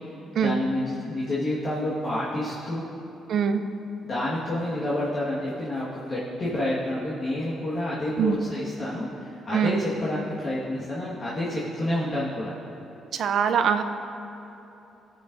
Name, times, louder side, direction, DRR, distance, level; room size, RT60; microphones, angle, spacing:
voice 1, 0.3-2.9 4.0-12.5, left 1 dB, 45° left, -9 dB, 1.7 m, -29 dB
voice 2, 3.3-3.6 8.2-8.4 9.5-9.8 13.1-13.8, right 7 dB, 65° right, 8 dB, 0.5 m, -23 dB
18.0 x 7.2 x 2.7 m, 3.0 s
cardioid pair, 90°, 0 cm